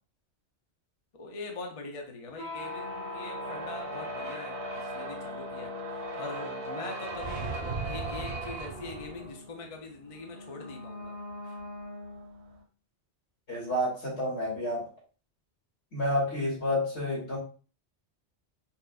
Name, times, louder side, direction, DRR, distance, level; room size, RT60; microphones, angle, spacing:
voice 1, 1.1-5.7 6.1-11.2 11.4-11.6, left 3 dB, 40° left, 0.6 m, -43 dB
sound 1, 2.3-12.6, equal, 85° right, 1.4 m, -39 dB
sound 2, 7.1-9.3, right 5 dB, 50° right, 0.9 m, -38 dB
voice 2, 13.5-14.9 15.9-17.4, left 1 dB, 70° left, 2.6 m, -29 dB
5.5 x 2.5 x 2.4 m
omnidirectional pair, 1.1 m